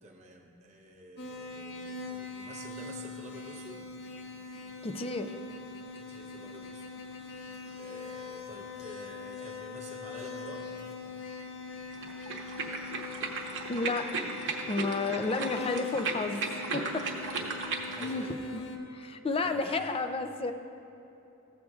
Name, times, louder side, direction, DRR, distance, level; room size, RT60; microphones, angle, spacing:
voice 1, 0.0-3.9 5.9-6.9 7.7-10.7 17.0-18.7 19.4-19.9, right 1 dB, 30° right, -1 dB, 0.7 m, -49 dB
sound 1, 1.2-18.8, left 4 dB, 45° left, 0.8 m, -42 dB
voice 2, 4.8-5.4 13.7-14.1 14.7-17.4 18.0-18.3 18.5-18.6 18.9-20.5, left 3 dB, 25° left, 8 dB, 0.4 m, -32 dB
sound 2, 11.9-18.1, right 4 dB, 55° right, 0.9 m, -36 dB
14.5 x 7.5 x 2.4 m, 2.9 s
head